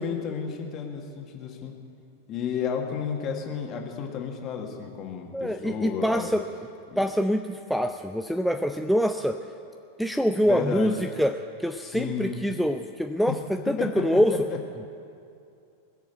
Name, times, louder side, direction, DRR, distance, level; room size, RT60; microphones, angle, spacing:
voice 1, 0.0-1.8 2.3-6.3 6.9-7.0 10.5-11.0 11.8-12.4 13.7-14.2 14.5-14.6, left 7 dB, 35° left, 2 dB, 1.9 m, -32 dB
voice 2, 5.3-6.5 7.0-9.4 10.0-13.4 13.7-14.4, equal, ahead, 5 dB, 0.4 m, -25 dB
21.0 x 7.2 x 8.0 m, 2.5 s
figure-of-eight pair, 90°, 0 cm